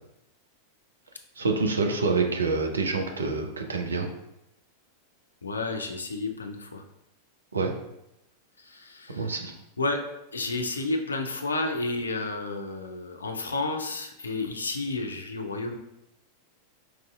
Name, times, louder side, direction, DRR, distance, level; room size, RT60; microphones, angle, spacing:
voice 1, 1.4-4.1 7.5-7.7 9.1-9.5, right 4 dB, 75° right, 3 dB, 0.5 m, -27 dB
voice 2, 5.4-6.8 8.6-9.3 9.8-10.0 10.3-15.8, left 2 dB, 75° left, 4 dB, 0.4 m, -31 dB
4.6 x 2.6 x 2.3 m, 0.86 s
figure-of-eight pair, 90°, 0 cm